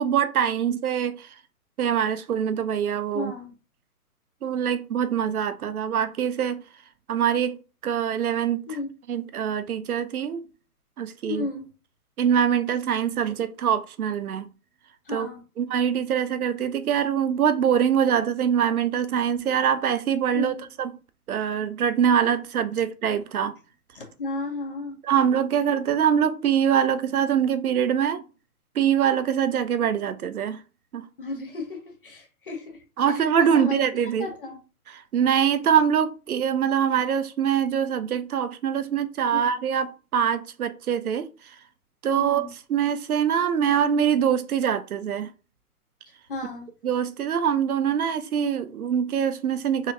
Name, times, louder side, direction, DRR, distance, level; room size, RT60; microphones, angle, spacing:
voice 1, 0.0-1.3 1.8-3.3 4.4-6.6 7.1-7.6 7.8-8.6 9.1-10.4 11.0-11.5 12.2-14.5 15.1-15.3 15.6-20.9 21.3-23.5 25.0-28.2 28.8-30.6 30.9-31.1 33.0-34.3 34.9-41.6 42.0-45.3 46.8-49.9, right 8 dB, 70° right, 0.6 m, -24 dB
voice 2, 3.1-3.5 8.7-8.9 11.3-11.7 15.0-15.4 20.3-20.6 23.9-25.0 31.2-34.6 39.3-39.4 42.2-42.5 46.3-46.7, left 3 dB, 35° left, 0.9 m, -34 dB
4.0 x 2.9 x 2.6 m
hypercardioid pair, 170°, 46 cm